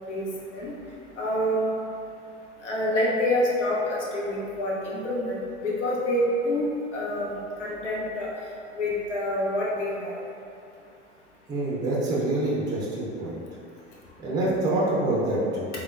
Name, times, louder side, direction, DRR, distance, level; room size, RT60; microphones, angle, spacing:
voice 1, 1.2-1.6 2.6-6.7 6.9-8.3 8.7-10.2, left 1 dB, 80° left, -5 dB, 0.7 m, -27 dB
voice 2, 11.5-13.4 14.2-15.7, right 1 dB, 10° right, -6 dB, 0.5 m, -26 dB
3.4 x 2.1 x 2.4 m, 2.5 s
figure-of-eight pair, 80°, 36 cm